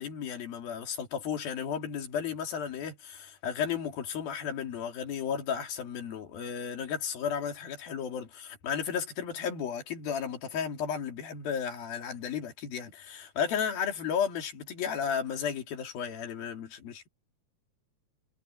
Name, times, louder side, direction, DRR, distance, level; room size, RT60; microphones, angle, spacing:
voice 1, 0.0-17.1, left 7 dB, 80° left, 4.6 m, -34 dB
omnidirectional pair, 4.2 m